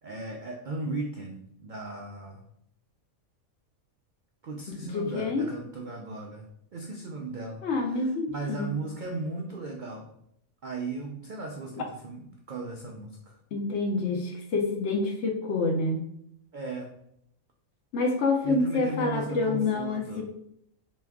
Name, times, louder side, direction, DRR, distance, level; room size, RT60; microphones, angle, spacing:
voice 1, 0.0-2.4 4.4-10.1 10.6-13.4 16.5-16.9 18.4-20.2, right 3 dB, 75° right, 0 dB, 0.4 m, -37 dB
voice 2, 4.7-5.5 7.6-8.7 13.5-16.0 17.9-20.2, left 3 dB, 65° left, 3 dB, 0.8 m, -27 dB
3.4 x 3.0 x 3.5 m, 0.72 s
omnidirectional pair, 1.5 m